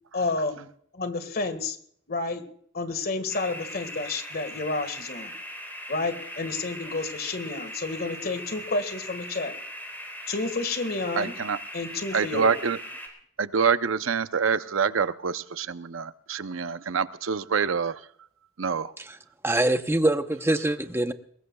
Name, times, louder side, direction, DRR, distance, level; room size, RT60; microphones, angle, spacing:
voice 1, 0.1-0.7 0.9-1.8 2.1-2.4 2.7-5.3 5.9-9.5 10.3-11.3 11.7-12.5, left 3 dB, 50° left, 1.7 m, -30 dB
sound 1, 3.3-13.1, left 1 dB, 10° left, 4.0 m, -40 dB
voice 2, 11.1-11.6 12.1-12.8 13.4-18.0 18.6-18.9, right 6 dB, 85° right, 0.7 m, -26 dB
voice 3, 19.4-21.1, right 1 dB, 10° right, 0.8 m, -24 dB
22.5 x 19.5 x 2.3 m
head